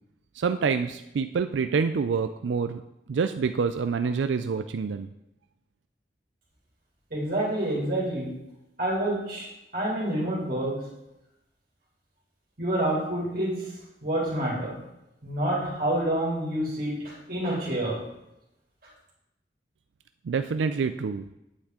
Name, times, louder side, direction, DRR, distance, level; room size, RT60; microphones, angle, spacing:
voice 1, 0.3-2.8 3.1-5.1 20.2-21.2, right 5 dB, 85° right, 9 dB, 0.4 m, -27 dB
voice 2, 7.1-8.3 8.8-10.9 12.6-13.7 14.0-14.8 15.2-18.1, right 1 dB, 50° right, -5 dB, 3.0 m, -28 dB
8.8 x 8.2 x 3.7 m, 0.88 s
head